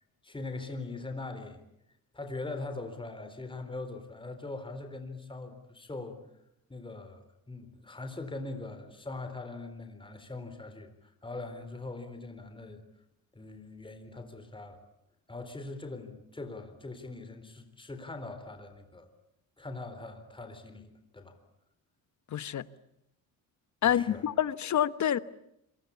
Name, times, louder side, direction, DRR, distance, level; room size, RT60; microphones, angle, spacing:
voice 1, 0.2-1.6 2.1-6.2 6.7-12.8 13.3-14.8 15.3-19.1 19.6-21.4 23.8-24.2, left 2 dB, 15° left, 3.9 m, -41 dB
voice 2, 22.3-22.7 23.8-25.2, left 10 dB, 50° left, 1.2 m, -27 dB
27.0 x 24.5 x 8.4 m
cardioid pair, 115°, 37 cm